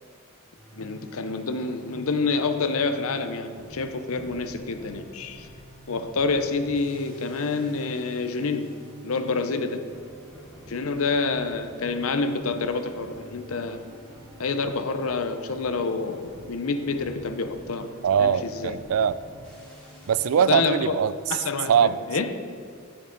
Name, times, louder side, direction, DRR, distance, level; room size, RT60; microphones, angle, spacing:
sound 1, 0.6-20.5, equal, 5° left, 2.4 m, -48 dB
voice 1, 0.7-5.5 5.9-8.7 9.0-9.8 10.7-13.8 14.4-17.9 18.2-18.8 20.4-20.9 21.3-22.3, left 4 dB, 75° left, 9 dB, 0.7 m, -28 dB
voice 2, 18.0-19.2 20.1-21.1 21.7-21.9, right 7 dB, 75° right, 16 dB, 0.3 m, -21 dB
11.5 x 8.5 x 3.9 m, 2.3 s
head